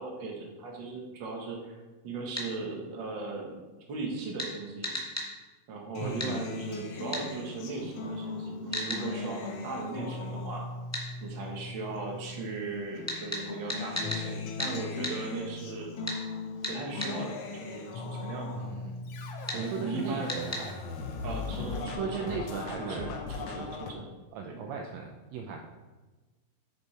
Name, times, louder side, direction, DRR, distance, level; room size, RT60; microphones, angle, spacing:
voice 1, 0.0-1.8 2.0-3.6 3.9-5.0 5.7-10.7 11.2-15.9 16.7-18.7 19.5-20.5 21.2-22.4 22.8-24.0 24.4-24.6, right 3 dB, 45° right, 0 dB, 1.9 m, -38 dB
sound 1, 2.3-2.5 4.4-4.5 4.8-5.3 6.2-6.3 7.1-7.2 8.7-9.0 10.9-11.1 13.1-14.2 14.6-14.7 15.0-15.2 16.0-16.2 16.6-17.1 19.5-19.6 20.3-20.6, left 1 dB, 15° left, 0.4 m, -34 dB
Acoustic guitar, 5.9-12.6 13.0-20.6 21.0-21.9, left 3 dB, 65° left, 1.4 m, -39 dB
voice 2, 6.0-6.4 18.6-19.2 19.5-20.7 21.8-23.1 23.4-23.8 24.3-25.7, right 6 dB, 75° right, 2 dB, 1.8 m, -38 dB
Scratching (performance technique), 19.1-23.9, left 4 dB, 80° left, 2.4 m, -38 dB
9.5 x 6.7 x 4.3 m, 1.2 s
omnidirectional pair, 3.4 m